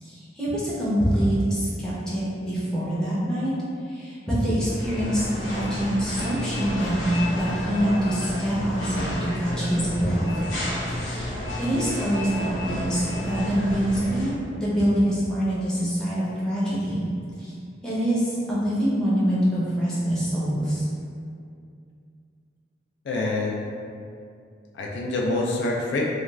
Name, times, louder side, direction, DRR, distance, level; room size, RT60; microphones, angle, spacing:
voice 1, 0.0-3.5 3.9-10.2 11.0-11.3 11.6-17.0 17.4-17.5 17.8-20.8, equal, 5° left, -10 dB, 0.6 m, -25 dB
sound 1, 4.6-14.3, left 1 dB, 85° left, 0.7 m, -31 dB
voice 2, 23.1-23.6 24.7-26.0, left 2 dB, 65° left, -2 dB, 0.3 m, -26 dB
2.3 x 2.3 x 3.1 m, 2.4 s
head